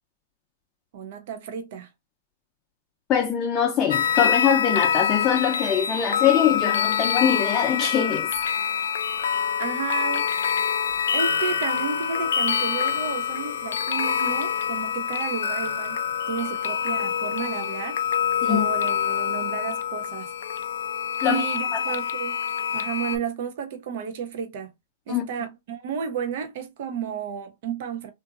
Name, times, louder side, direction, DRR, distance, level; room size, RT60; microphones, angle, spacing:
voice 1, 0.9-1.9 9.6-10.6 11.1-16.0 16.3-18.0 18.5-20.3 21.2-22.4 22.7-24.7 25.1-28.1, right 7 dB, 60° right, 0.6 m, -32 dB
voice 2, 3.1-8.3 18.4-18.7 21.2-21.5 21.7-21.8 25.1-25.3, left 8 dB, 30° left, 0.5 m, -23 dB
sound 1, 3.9-23.2, left 7 dB, 80° left, 0.4 m, -26 dB
2.8 x 2.5 x 2.3 m
hypercardioid pair, 130°, 0 cm